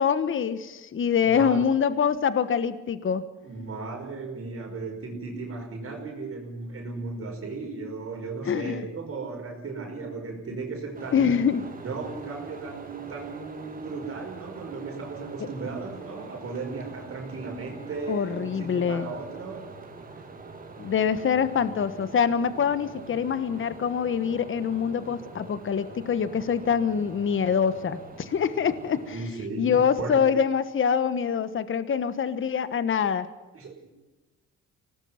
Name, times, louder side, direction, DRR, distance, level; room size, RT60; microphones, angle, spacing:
voice 1, 0.0-3.2 8.5-8.9 11.1-11.7 18.1-19.1 20.8-29.2 29.6-33.3, left 7 dB, 40° left, 13 dB, 1.3 m, -25 dB
voice 2, 1.2-1.6 3.4-11.4 11.8-19.7 25.0-25.2 29.1-30.2 33.5-33.7, right 4 dB, 45° right, 1 dB, 5.1 m, -36 dB
sound 1, 10.9-29.2, right 4 dB, 25° right, 2.9 m, -44 dB
24.5 x 18.5 x 5.9 m, 1.1 s
cardioid pair, 105°, 31 cm